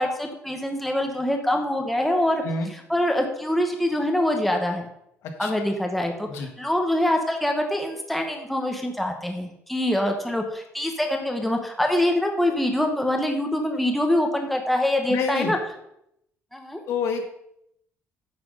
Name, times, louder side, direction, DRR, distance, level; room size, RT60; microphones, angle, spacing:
voice 1, 0.0-2.4 2.9-4.9 5.4-15.6 16.5-16.8, left 1 dB, ahead, 3 dB, 0.9 m, -24 dB
voice 2, 15.1-15.6 16.9-17.2, left 4 dB, 65° left, 5 dB, 1.5 m, -28 dB
9.4 x 5.9 x 5.4 m, 0.78 s
cardioid pair, 160°, 5 cm